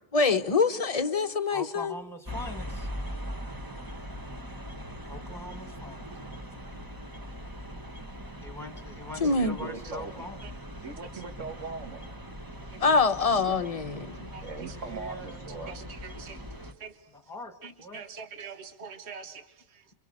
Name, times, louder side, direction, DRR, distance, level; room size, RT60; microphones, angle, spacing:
voice 1, 0.1-1.9 9.2-9.6 12.8-14.3, left 4 dB, 30° left, 8 dB, 1.0 m, -25 dB
voice 2, 1.5-2.9 5.0-6.1 8.4-10.4 14.6-16.2 17.1-17.5 17.8-18.0, left 1 dB, ahead, 6 dB, 1.9 m, -42 dB
sound 1, 2.2-16.7, equal, 15° right, 1.3 m, -41 dB
voice 3, 9.2-10.3 10.8-12.0 13.3-13.4 14.4-15.8, right 4 dB, 80° right, 6 dB, 2.0 m, -40 dB
voice 4, 14.3-14.7 15.5-16.4 16.8-17.0 17.6-19.8, right 5 dB, 60° right, 8 dB, 1.6 m, -44 dB
27.5 x 25.0 x 6.7 m, 0.87 s
omnidirectional pair, 1.3 m